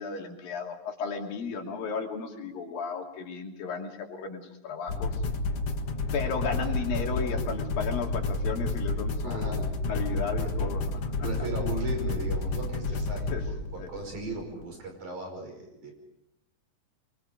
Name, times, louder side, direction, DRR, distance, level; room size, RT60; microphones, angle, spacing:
voice 1, 0.0-5.1 6.1-10.9 11.2-11.3 13.3-13.4 13.8-13.9, left 5 dB, 85° left, 2 dB, 4.4 m, -34 dB
Zombie Chase, 4.9-14.5, left 2 dB, 50° left, 2.3 m, -30 dB
voice 2, 9.2-9.7 10.4-10.7 11.2-15.9, right 2 dB, 60° right, 3 dB, 6.9 m, -37 dB
27.0 x 23.5 x 5.1 m, 0.88 s
omnidirectional pair, 4.0 m